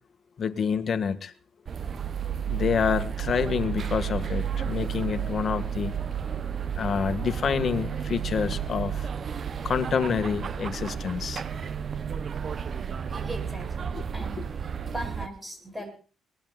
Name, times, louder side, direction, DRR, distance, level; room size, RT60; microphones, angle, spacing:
voice 1, 0.4-1.3 2.5-5.9 6.8-9.1 9.6-11.4, left 6 dB, 50° left, 9 dB, 1.8 m, -27 dB
sound 1, 1.7-15.3, right 8 dB, 50° right, 0.8 m, -32 dB
voice 2, 13.1-14.4 14.9-15.9, equal, 10° right, 6 dB, 8.0 m, -39 dB
22.5 x 19.5 x 2.5 m, 0.38 s
cardioid pair, 90°, 0 cm